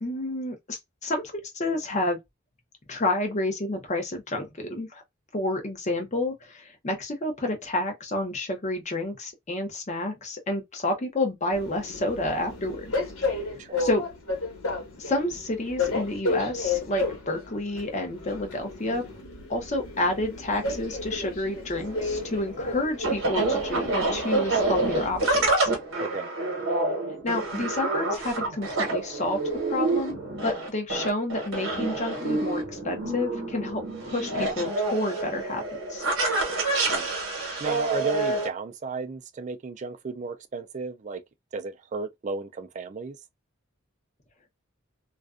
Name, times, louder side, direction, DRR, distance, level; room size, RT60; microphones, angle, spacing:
voice 1, 0.0-2.2 2.9-5.0 5.3-12.9 13.3-13.4 13.8-14.0 15.0-19.0 19.5-25.7 27.2-29.4 29.7-35.6 35.9-36.1, left 1 dB, 35° left, 0.7 m, -29 dB
Train, 11.5-25.5, left 3 dB, 85° left, 1.1 m, -33 dB
voice 2, 13.5-13.8 26.0-26.3 36.7-37.1 37.4-41.2 41.5-43.2, right 4 dB, 35° right, 0.3 m, -34 dB
sound 1, 21.8-38.5, right 2 dB, 70° right, 0.9 m, -28 dB
2.4 x 2.2 x 2.4 m
head